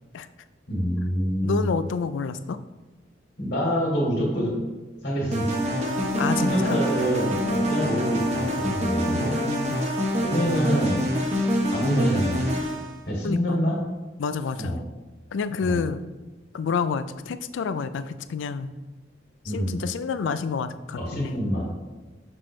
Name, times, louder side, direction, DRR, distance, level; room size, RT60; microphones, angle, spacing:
voice 1, 0.7-1.7 3.4-4.6 5.0-5.6 6.4-9.3 10.2-11.0 11.7-12.6 13.1-13.8 14.6-14.8 15.6-15.8 19.4-19.8 21.0-21.7, equal, 55° left, -3 dB, 2.1 m, -26 dB
voice 2, 1.4-2.6 6.2-6.8 9.0-9.8 13.2-13.6 14.2-14.8 15.3-16.0 16.5-18.7 19.5-21.4, left 5 dB, 85° left, 12 dB, 0.4 m, -29 dB
sound 1, 5.3-12.9, equal, 35° right, 1.0 m, -25 dB
6.2 x 6.0 x 3.2 m, 1.3 s
head